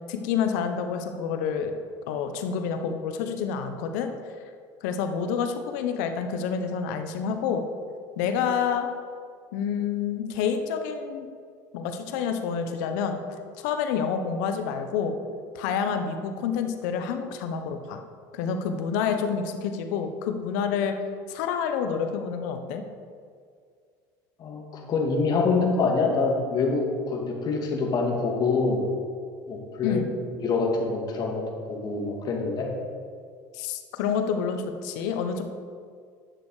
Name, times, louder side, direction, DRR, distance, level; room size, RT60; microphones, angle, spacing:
voice 1, 0.1-1.7 2.1-4.1 4.8-7.6 8.2-8.9 9.5-11.3 11.7-13.2 13.6-15.2 15.5-18.0 18.3-20.9 21.3-22.8 29.8-30.1 33.5-35.4, left 7 dB, 80° left, 7 dB, 0.9 m, -28 dB
voice 2, 24.4-28.9 29.5-30.0 30.3-32.7, left 4 dB, 45° left, 0 dB, 2.1 m, -25 dB
10.5 x 6.4 x 4.9 m, 2.1 s
supercardioid pair, 105°, 9 cm